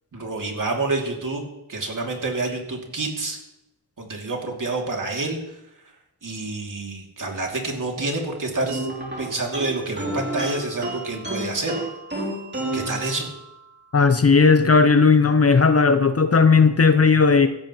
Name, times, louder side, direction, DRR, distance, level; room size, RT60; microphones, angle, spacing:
voice 1, 0.1-3.4 4.0-5.6 6.2-8.9 9.2-11.7 12.7-13.3, right 3 dB, 50° right, 1 dB, 2.6 m, -28 dB
sound 1, 8.7-13.7, right 1 dB, 25° right, 2.9 m, -31 dB
voice 2, 13.9-17.5, left 4 dB, 40° left, 9 dB, 0.7 m, -16 dB
16.0 x 14.5 x 3.1 m, 0.87 s
wide cardioid pair, 120°, 39 cm